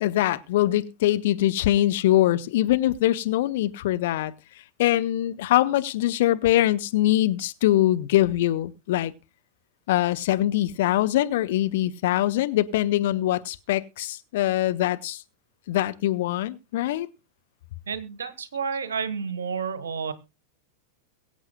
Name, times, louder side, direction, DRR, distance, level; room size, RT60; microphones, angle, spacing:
voice 1, 0.0-4.3 4.8-9.1 9.9-15.2 15.7-17.1, left 14 dB, 55° left, 0.8 m, -23 dB
voice 2, 17.9-20.1, right 6 dB, 65° right, 1.3 m, -30 dB
22.5 x 8.1 x 2.3 m
figure-of-eight pair, 90°, 0 cm